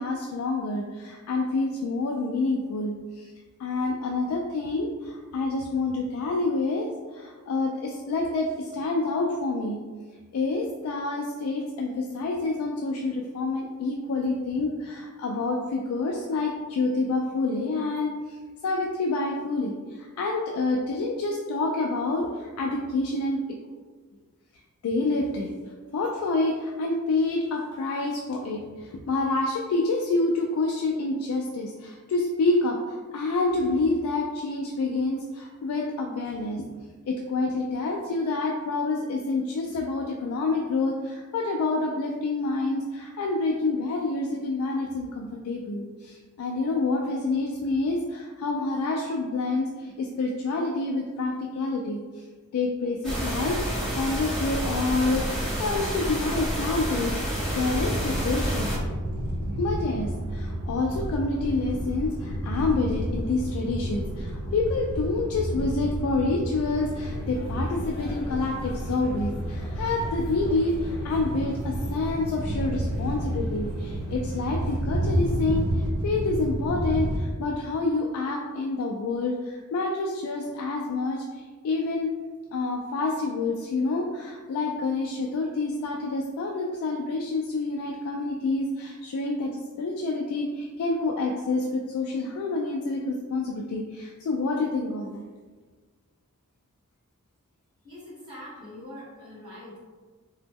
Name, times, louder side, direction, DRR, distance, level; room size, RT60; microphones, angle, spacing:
voice 1, 0.0-3.3 3.6-9.8 10.3-18.4 18.6-23.4 24.8-25.5 25.9-36.6 37.1-52.0 52.5-58.7 59.6-82.1 82.5-95.2, left 3 dB, 80° left, 0 dB, 0.3 m, -28 dB
sound 1, 53.0-58.8, equal, 5° left, 1.0 m, -29 dB
sound 2, 57.4-77.2, equal, 70° right, 0.4 m, -30 dB
sound 3, 66.6-74.8, left 1 dB, 45° left, 0.7 m, -48 dB
voice 2, 97.8-99.8, left 1 dB, 20° right, -10 dB, 1.1 m, -43 dB
2.9 x 2.1 x 3.4 m, 1.4 s
head